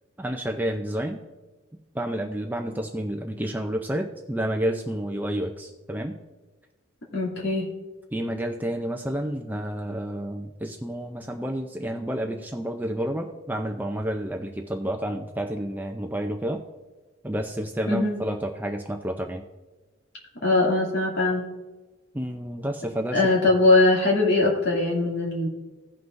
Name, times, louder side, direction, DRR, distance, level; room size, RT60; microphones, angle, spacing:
voice 1, 0.2-1.2 1.9-6.2 8.1-16.6 17.2-19.4 22.1-23.2, right 1 dB, 10° right, 3 dB, 0.5 m, -30 dB
voice 2, 7.1-7.7 17.9-18.2 20.4-21.4 23.1-25.5, left 2 dB, 55° left, -4 dB, 2.5 m, -21 dB
17.5 x 5.8 x 2.6 m, 1.2 s
head